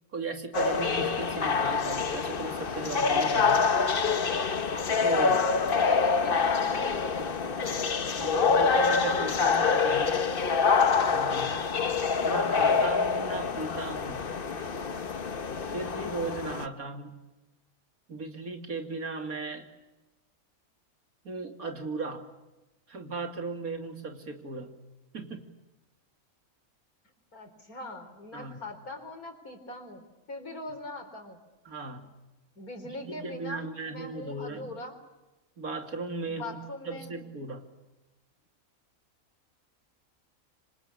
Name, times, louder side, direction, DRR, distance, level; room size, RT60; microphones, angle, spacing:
voice 1, 0.1-3.6 5.0-5.3 8.2-10.2 11.1-11.5 12.2-14.3 15.7-17.1 18.1-19.7 21.2-22.3 22.9-24.7 25.1-25.4 28.3-28.6 31.6-32.1 33.0-34.7 35.6-36.6 36.8-37.6, right 3 dB, 80° right, 5 dB, 3.3 m, -36 dB
sound 1, 0.5-16.7, left 5 dB, 40° left, 1.2 m, -26 dB
voice 2, 5.2-8.2 27.3-30.0 30.3-31.4 32.5-35.0 36.3-37.3, left 2 dB, 85° left, 6 dB, 4.7 m, -41 dB
27.0 x 25.5 x 8.6 m, 1.1 s
omnidirectional pair, 1.5 m